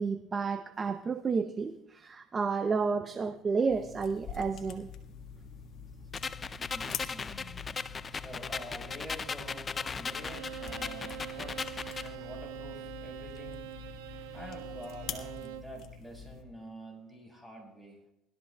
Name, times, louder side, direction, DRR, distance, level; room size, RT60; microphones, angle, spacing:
voice 1, 0.0-4.9, right 5 dB, 30° right, 9 dB, 0.6 m, -31 dB
sound 1, 3.7-16.4, left 6 dB, 60° left, 1.6 m, -46 dB
sound 2, 6.1-12.1, left 5 dB, 30° left, 0.4 m, -38 dB
voice 2, 6.5-11.6 12.0-13.6 14.3-18.0, equal, 5° right, 0 dB, 4.6 m, -47 dB
Bowed string instrument, 10.1-15.8, right 10 dB, 90° right, 0.8 m, -44 dB
21.0 x 13.5 x 2.3 m, 0.84 s
supercardioid pair, 90°, 0 cm